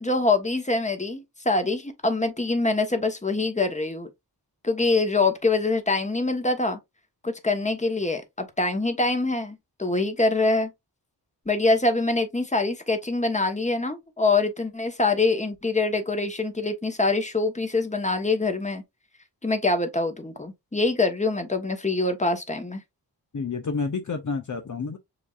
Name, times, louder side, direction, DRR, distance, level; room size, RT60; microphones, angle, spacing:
voice 1, 0.0-4.1 4.6-6.8 7.2-10.7 11.5-18.8 19.4-22.8, left 3 dB, 15° left, 1.2 m, -24 dB
voice 2, 23.3-25.0, left 4 dB, 50° left, 0.7 m, -29 dB
6.9 x 2.7 x 2.4 m
wide cardioid pair, 55°, 40 cm